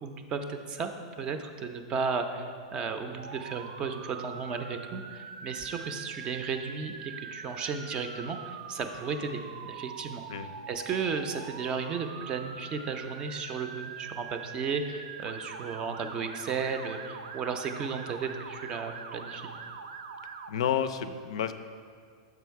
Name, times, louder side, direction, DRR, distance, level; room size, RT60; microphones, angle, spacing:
voice 1, 0.0-10.2 10.7-19.4, right 5 dB, 25° right, 7 dB, 0.5 m, -34 dB
Motor vehicle (road) / Siren, 3.2-20.5, right 5 dB, 85° right, 0.5 m, -43 dB
voice 2, 20.5-21.5, left 9 dB, 80° left, 11 dB, 0.4 m, -30 dB
6.9 x 4.8 x 4.6 m, 2.1 s
supercardioid pair, 145°, 3 cm